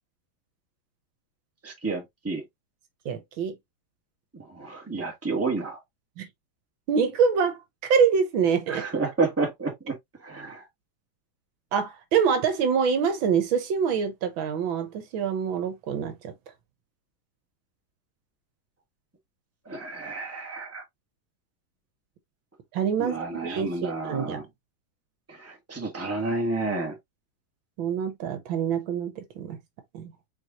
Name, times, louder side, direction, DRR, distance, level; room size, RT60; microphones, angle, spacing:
voice 1, 1.6-2.4 4.4-5.8 8.7-10.6 19.6-20.8 23.0-24.4 25.3-27.0, right 3 dB, 10° right, 1.4 m, -30 dB
voice 2, 3.1-3.6 6.2-6.3 6.9-8.8 11.7-16.3 22.7-24.5 27.8-29.6 29.9-30.1, right 6 dB, 75° right, 1.7 m, -25 dB
4.7 x 4.4 x 2.6 m
omnidirectional pair, 2.2 m